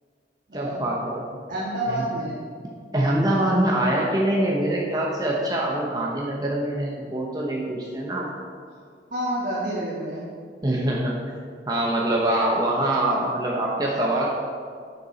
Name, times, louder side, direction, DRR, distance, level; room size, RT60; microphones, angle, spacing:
voice 1, 0.5-1.2 1.9-2.1 2.9-8.3 10.6-11.1 11.7-14.3, right 1 dB, 20° right, -3 dB, 1.0 m, -24 dB
voice 2, 1.5-2.4 9.1-10.2, right 1 dB, 50° right, -6 dB, 1.6 m, -28 dB
11.5 x 6.9 x 4.2 m, 2.1 s
head